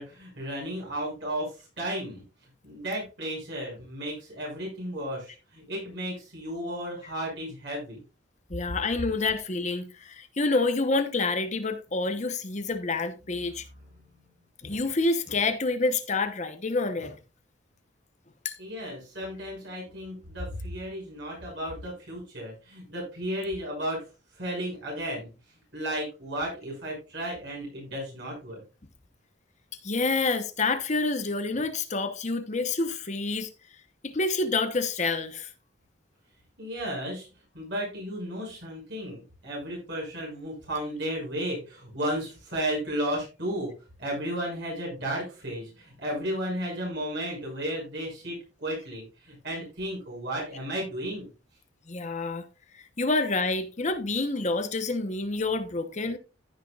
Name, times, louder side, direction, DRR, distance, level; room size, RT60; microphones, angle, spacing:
voice 1, 0.0-1.5 1.8-2.2 2.6-8.0 13.7-14.2 18.6-24.0 24.3-25.3 25.7-28.6 36.6-37.3 37.5-43.7 44.0-51.3, equal, 60° right, 6.4 m, -34 dB
voice 2, 8.5-13.7 14.6-17.1 18.4-18.5 29.8-33.5 34.0-35.5 51.9-52.5 52.7-56.2, left 3 dB, 35° left, 1.0 m, -28 dB
15.0 x 6.6 x 2.4 m
head